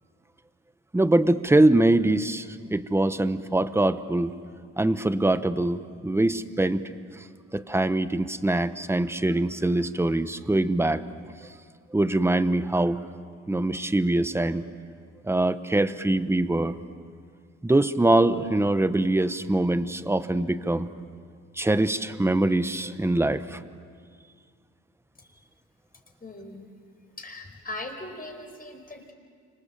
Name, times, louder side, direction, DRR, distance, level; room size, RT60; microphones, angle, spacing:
voice 1, 0.9-4.3 4.8-7.2 7.5-11.0 11.9-13.0 13.5-14.6 15.2-16.8 17.6-20.9 21.6-23.6, right 2 dB, 10° right, 12 dB, 1.1 m, -23 dB
voice 2, 26.2-26.7 27.2-29.1, left 2 dB, 30° left, 3 dB, 5.2 m, -39 dB
30.0 x 26.0 x 7.5 m, 2.1 s
cardioid pair, 90°, 30 cm